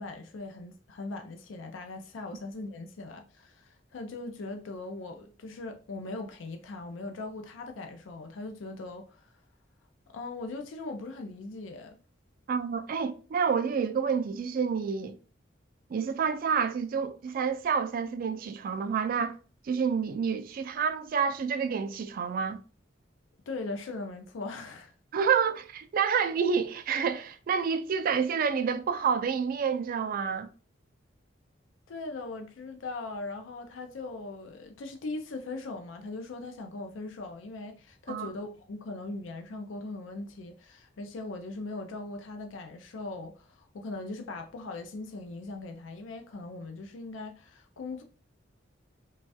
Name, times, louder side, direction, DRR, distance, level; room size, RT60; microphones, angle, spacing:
voice 1, 0.0-9.3 10.1-12.0 23.5-24.9 31.9-48.0, left 3 dB, 80° left, 0.4 m, -40 dB
voice 2, 12.5-15.2 15.9-19.4 19.6-22.6 25.1-30.5 38.1-38.3, right 6 dB, 50° right, 0.3 m, -28 dB
3.1 x 2.3 x 2.6 m
head